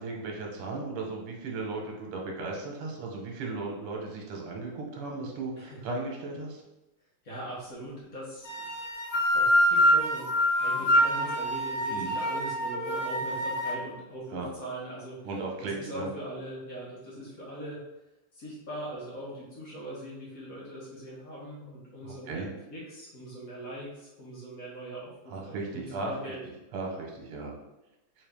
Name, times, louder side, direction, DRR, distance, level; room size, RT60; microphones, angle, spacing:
voice 1, 0.0-6.6 11.9-12.2 14.3-14.5 15.2-16.1 22.0-22.5 25.3-26.3 26.7-27.5, right 3 dB, 80° right, 0 dB, 1.8 m, -36 dB
voice 2, 7.2-8.5 9.3-10.3 10.6-15.3 15.6-17.8 18.3-26.5, right 1 dB, 50° left, -6 dB, 1.2 m, -41 dB
sound 1, 8.4-13.7, equal, 80° left, 0.6 m, -25 dB
3.7 x 3.3 x 3.4 m, 0.99 s
omnidirectional pair, 2.4 m